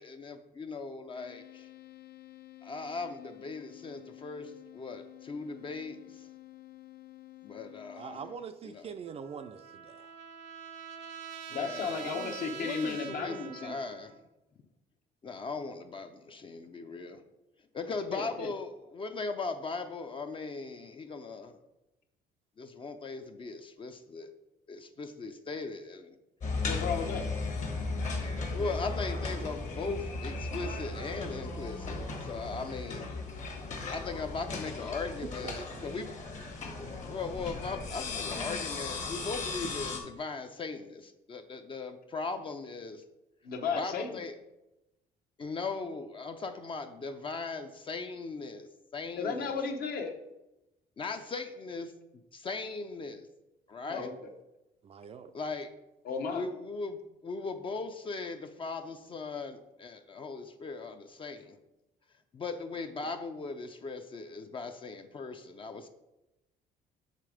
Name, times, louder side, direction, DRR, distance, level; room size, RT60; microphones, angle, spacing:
voice 1, 0.0-1.7 2.6-6.3 7.4-8.2 8.6-8.9 11.5-14.2 15.2-17.2 17.7-21.5 22.6-24.3 24.7-26.2 28.5-33.1 33.9-36.1 36.6-43.0 43.7-44.4 45.4-49.6 51.0-51.9 52.3-53.3 53.7-54.1 55.3-55.7 56.3-61.6 62.3-65.9, left 4 dB, 30° left, 7 dB, 0.4 m, -39 dB
sound 1, 1.1-8.4, left 17 dB, 80° left, 0.5 m, -51 dB
voice 2, 8.0-10.1 35.4-35.9 54.8-55.3, right 6 dB, 35° right, 7 dB, 0.4 m, -44 dB
Trumpet, 9.0-14.2, right 8 dB, 85° right, 0.7 m, -45 dB
voice 3, 11.5-13.7 18.1-18.5 26.7-27.3 43.4-44.2 49.2-50.1 53.9-54.3 56.0-56.5, left 5 dB, 60° left, 4 dB, 1.0 m, -34 dB
sound 2, 26.4-40.0, left 3 dB, 45° left, 1.2 m, -36 dB
6.6 x 3.4 x 4.9 m, 0.96 s
cardioid pair, 110°, 17 cm